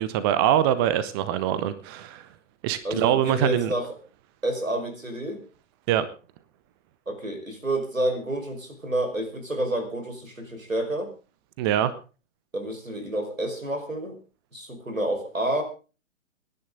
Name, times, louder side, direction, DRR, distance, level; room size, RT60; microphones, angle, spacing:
voice 1, 0.0-2.2 2.6-3.7 5.9-6.1 11.6-11.9, right 11 dB, 20° right, 14 dB, 0.8 m, -23 dB
voice 2, 2.8-3.9 4.4-5.4 7.1-11.1 12.5-14.2 14.5-15.6, right 1 dB, 85° right, 7 dB, 5.1 m, -29 dB
25.0 x 10.5 x 3.8 m, 0.34 s
figure-of-eight pair, 125°, 39 cm